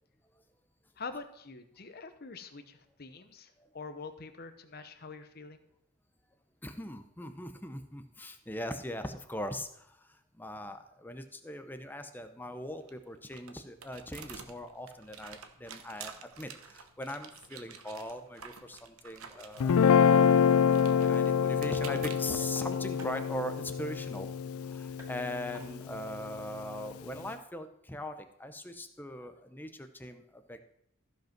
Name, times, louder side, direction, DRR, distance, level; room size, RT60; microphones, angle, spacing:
voice 1, 1.0-5.6, left 4 dB, 45° left, 8 dB, 0.9 m, -45 dB
voice 2, 6.6-20.2 20.6-24.3 24.6-30.6, left 1 dB, 10° left, 8 dB, 0.7 m, -41 dB
sound 1, 12.5-24.2, right 6 dB, 80° right, 1.0 m, -51 dB
sound 2, 19.3-19.7 21.4-24.0 24.3-24.4 24.6-24.7 24.9-25.9, right 2 dB, 10° right, 1.7 m, -54 dB
Guitar, 19.6-25.9, left 7 dB, 80° left, 0.4 m, -26 dB
14.5 x 5.3 x 5.9 m, 0.76 s
head